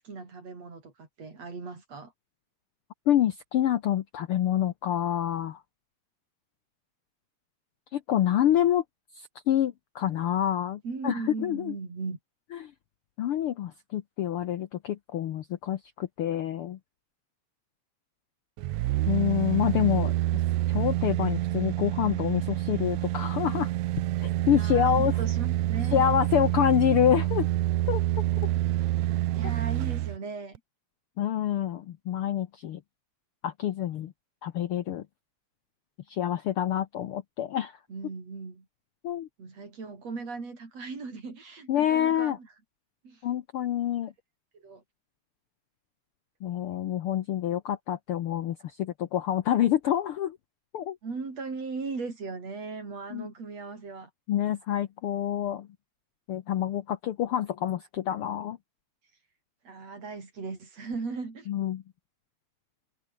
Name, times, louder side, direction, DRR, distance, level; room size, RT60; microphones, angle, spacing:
voice 1, 0.0-2.1 10.8-12.2 24.5-26.1 29.3-30.5 37.9-38.7 39.4-42.5 43.0-43.2 44.5-44.8 51.0-54.1 59.6-61.5, right 4 dB, 55° right, 6.2 m, -38 dB
voice 2, 3.1-5.6 7.9-8.8 9.1-11.7 12.5-12.7 13.2-16.8 19.1-20.1 20.7-23.7 24.2-25.1 25.9-27.5 27.9-28.0 31.2-32.8 33.4-34.1 34.4-35.0 36.1-37.8 39.0-39.3 41.7-42.4 43.2-44.1 46.4-50.4 50.7-51.0 53.1-53.3 54.3-55.7 56.3-58.6 61.5-61.8, left 11 dB, 65° left, 1.4 m, -27 dB
sound 1, 18.6-30.2 30.6-30.7, right 16 dB, 75° right, 2.0 m, -27 dB
omnidirectional pair, 3.4 m